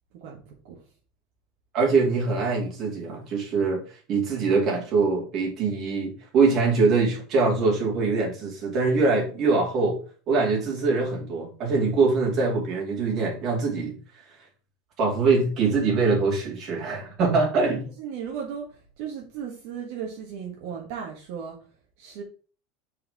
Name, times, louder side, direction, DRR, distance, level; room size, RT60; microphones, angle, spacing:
voice 1, 0.1-0.8 18.0-21.6 22.0-22.2, right 7 dB, 55° right, 0 dB, 1.6 m, -36 dB
voice 2, 1.7-3.8 4.1-10.0 10.3-14.0 15.0-17.9, right 4 dB, 35° right, -1 dB, 2.7 m, -23 dB
7.8 x 4.8 x 3.6 m, 0.38 s
supercardioid pair, 170°, 0 cm